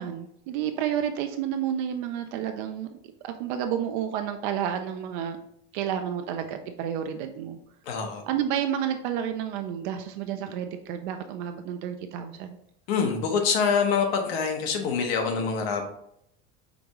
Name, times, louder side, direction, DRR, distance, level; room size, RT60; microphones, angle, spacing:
voice 1, 0.0-2.9 3.2-5.4 5.7-7.6 8.3-12.6, right 9 dB, 55° right, 7 dB, 0.4 m, -30 dB
voice 2, 7.9-8.2 12.9-15.9, left 5 dB, 85° left, 3 dB, 1.1 m, -25 dB
5.1 x 3.5 x 3.0 m, 0.75 s
cardioid pair, 175°, 30 cm